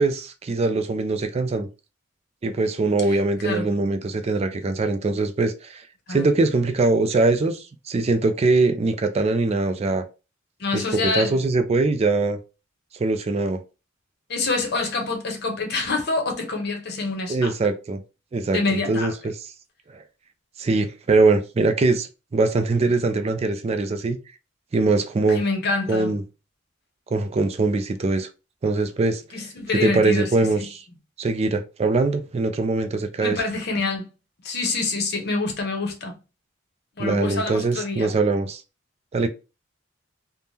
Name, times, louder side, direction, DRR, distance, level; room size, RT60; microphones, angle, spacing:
voice 1, 0.0-1.7 2.4-10.0 10.7-12.4 13.0-13.6 17.3-18.0 18.3-18.6 18.9-19.1 19.9-20.0 20.6-24.2 24.7-25.4 25.9-26.2 27.1-28.3 28.6-30.8 31.2-33.4 37.0-38.6 39.1-39.3, right 3 dB, 30° right, 0.3 m, -22 dB
voice 2, 10.6-11.4 14.3-17.5 18.5-19.1 25.3-26.1 29.3-30.7 33.2-34.1 34.4-36.1 37.0-38.1, left 3 dB, 55° left, 0.9 m, -26 dB
3.5 x 2.1 x 2.7 m
head